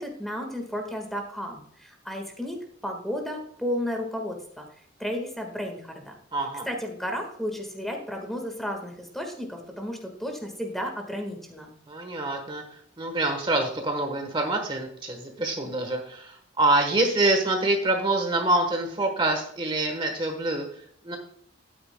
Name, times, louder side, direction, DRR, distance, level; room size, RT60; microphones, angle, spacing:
voice 1, 0.0-4.7 5.0-6.2 6.7-11.7, equal, ahead, 3 dB, 1.6 m, -33 dB
voice 2, 6.3-6.7 11.9-21.2, right 2 dB, 25° right, 4 dB, 1.2 m, -26 dB
12.0 x 9.3 x 2.2 m, 0.65 s
head